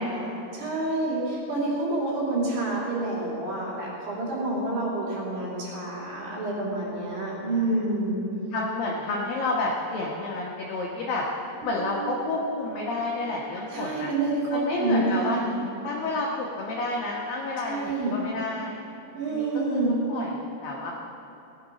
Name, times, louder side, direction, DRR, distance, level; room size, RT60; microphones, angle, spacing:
voice 1, 0.0-8.2 13.7-15.6 17.7-18.2 19.1-19.9, right 2 dB, 60° right, -6 dB, 4.6 m, -28 dB
voice 2, 7.5-7.9 8.5-11.2 11.6-14.1 14.5-15.4 15.8-18.8 19.3-19.5 20.1-20.9, left 2 dB, 90° left, -3 dB, 2.0 m, -30 dB
Bass guitar, 11.6-14.6, right 7 dB, 90° right, 5.7 m, -42 dB
18.0 x 9.4 x 5.0 m, 2.9 s
omnidirectional pair, 5.9 m